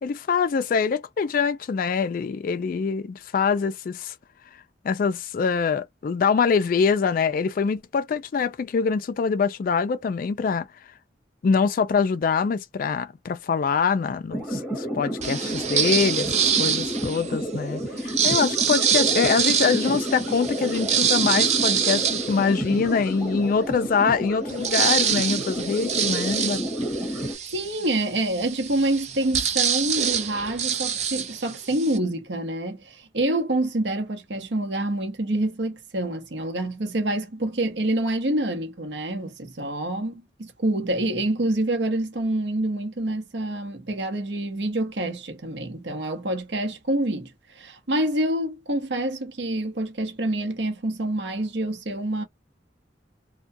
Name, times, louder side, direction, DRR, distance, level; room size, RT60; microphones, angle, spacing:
voice 1, 0.0-4.1 4.8-10.7 11.4-16.3 16.6-26.6, left 5 dB, 50° left, 0.3 m, -24 dB
sound 1, 14.3-27.3, equal, ahead, 1.1 m, -30 dB
sound 2, 15.2-17.4 18.0-23.1 23.6-23.7 24.0-32.0, right 8 dB, 35° right, 0.5 m, -25 dB
voice 2, 27.5-52.2, right 1 dB, 70° right, 0.8 m, -27 dB
2.2 x 2.2 x 2.5 m
head